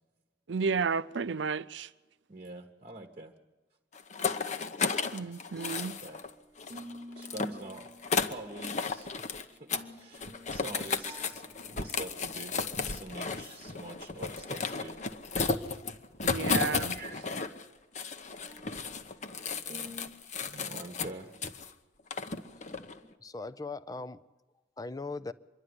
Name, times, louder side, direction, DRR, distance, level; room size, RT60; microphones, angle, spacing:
voice 1, 0.5-1.9 5.1-6.0 16.2-17.0, right 5 dB, 75° right, 0.6 m, -32 dB
voice 2, 2.3-3.3 5.7-6.2 7.1-15.0 16.8-17.4 19.6-20.1 20.4-21.4, right 2 dB, 35° right, 1.2 m, -46 dB
sound 1, 4.0-6.3 6.6-9.4 9.7-9.9 10.1-17.6 17.9-21.7 22.1-23.0, left 4 dB, 40° left, 0.9 m, -34 dB
sound 2, 5.4-6.3 6.7-8.9 9.5-11.9 12.2-12.3 12.7-12.8 14.3-14.4 14.8-14.9 18.5-19.2 19.7-20.1, equal, 20° right, 1.4 m, -50 dB
voice 3, 22.4-22.9 23.2-24.2 24.8-25.3, left 3 dB, 20° left, 0.6 m, -40 dB
25.5 x 11.5 x 9.6 m
head